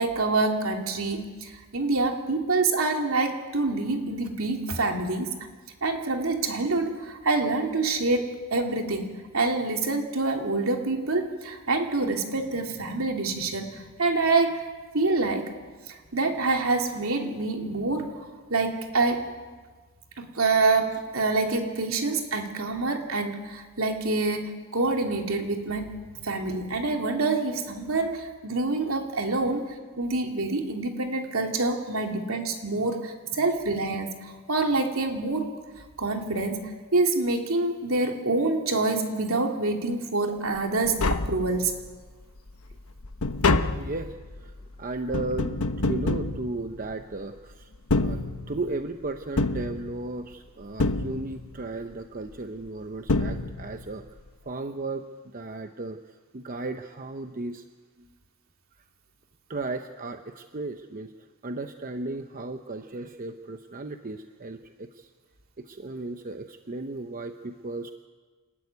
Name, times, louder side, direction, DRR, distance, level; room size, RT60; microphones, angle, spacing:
voice 1, 0.0-5.3 5.8-14.6 14.9-15.5 15.9-18.1 18.5-19.3 20.2-25.9 26.2-35.5 36.0-41.7, right 3 dB, 70° right, 2 dB, 2.9 m, -26 dB
Tap, 40.6-40.7 40.8-42.0 42.4-47.1 47.7-48.8 49.4-50.3 50.8-51.6 52.7-52.8 53.1-53.9 54.2-54.3, left 3 dB, 85° left, 1.0 m, -28 dB
voice 2, 43.8-44.5 44.8-48.2 48.5-54.0 54.4-55.1 55.3-57.6 59.5-61.1 61.4-65.1 65.6-67.9, right 2 dB, 40° right, 7 dB, 0.8 m, -35 dB
28.0 x 13.0 x 9.6 m, 1.4 s
head